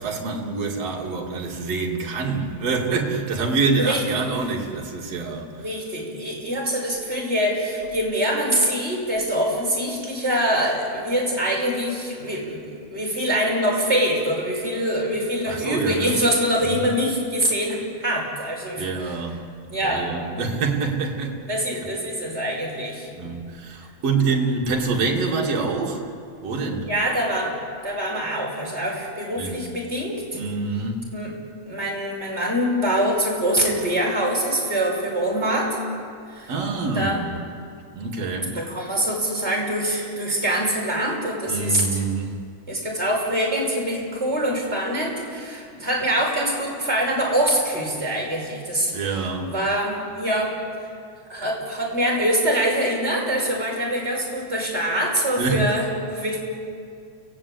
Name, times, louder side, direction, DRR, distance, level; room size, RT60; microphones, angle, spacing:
voice 1, 0.0-5.5 15.5-16.2 16.6-16.9 18.8-19.4 19.8-21.4 23.2-26.1 26.4-26.9 29.4-29.6 30.3-31.1 36.5-37.3 37.9-38.6 41.5-42.3 48.9-49.5 55.4-55.8, right 4 dB, 55° right, -1 dB, 3.8 m, -26 dB
voice 2, 5.6-19.1 19.7-20.1 21.4-23.1 26.9-30.4 31.1-31.3 31.7-35.8 36.3-36.5 36.8-37.2 38.5-42.0 42.7-49.2 49.5-50.6 51.3-56.4, equal, 20° right, -2 dB, 6.2 m, -24 dB
29.5 x 18.5 x 8.7 m, 2.4 s
omnidirectional pair, 3.4 m